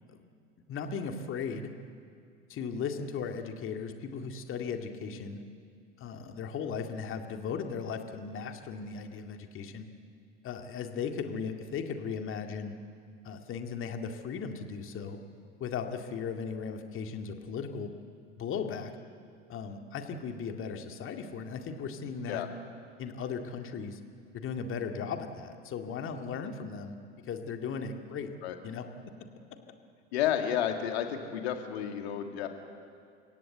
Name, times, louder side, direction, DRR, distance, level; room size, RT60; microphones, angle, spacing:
voice 1, 0.7-1.7 2.5-5.4 6.0-9.9 10.4-12.8 13.2-15.2 15.6-17.9 18.4-18.9 19.5-22.5 23.0-24.0 24.3-27.0 27.3-28.3 28.6-28.8, left 6 dB, 35° left, 5 dB, 2.2 m, -37 dB
voice 2, 30.1-32.5, left 10 dB, 60° left, 5 dB, 2.4 m, -31 dB
30.0 x 17.0 x 8.0 m, 2.3 s
figure-of-eight pair, 75°, 35 cm